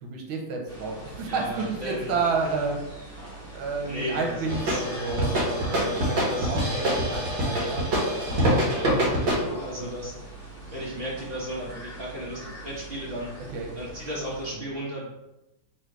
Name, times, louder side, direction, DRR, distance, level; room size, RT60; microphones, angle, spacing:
voice 1, 0.0-2.8 3.5-7.9 8.1-8.4 9.8-10.0 13.5-13.7, right 4 dB, 85° right, 1 dB, 1.6 m, -31 dB
sound 1, 0.7-14.6, right 2 dB, 10° right, 0.8 m, -43 dB
voice 2, 1.3-2.1 3.8-4.8 6.3-6.6 8.7-10.4 10.7-13.3 13.8-15.1, equal, 40° right, -5 dB, 0.9 m, -35 dB
sound 2, 4.5-9.4, equal, 65° right, 1.7 m, -25 dB
3.9 x 2.9 x 4.5 m, 0.95 s
omnidirectional pair, 2.2 m